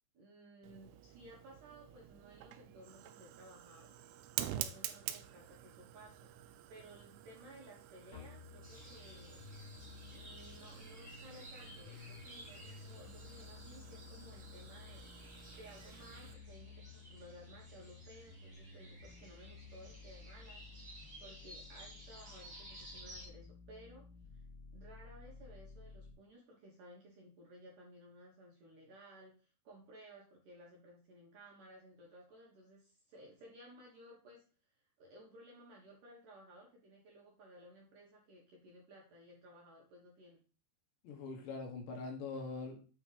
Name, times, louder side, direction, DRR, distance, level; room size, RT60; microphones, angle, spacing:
voice 1, 0.1-6.3 6.7-9.4 10.1-15.0 15.6-24.1 24.7-34.5 35.0-40.5, right 1 dB, 60° right, -2 dB, 2.5 m, -57 dB
Fire, 0.6-16.3, right 12 dB, 85° right, 3.1 m, -49 dB
sound 1, 8.1-26.1, left 5 dB, 30° left, 3.0 m, -54 dB
sound 2, 8.6-23.3, right 1 dB, 25° right, 1.1 m, -56 dB
voice 2, 41.0-42.8, left 3 dB, 70° left, 2 dB, 3.6 m, -43 dB
8.4 x 4.3 x 5.0 m, 0.36 s
omnidirectional pair, 5.4 m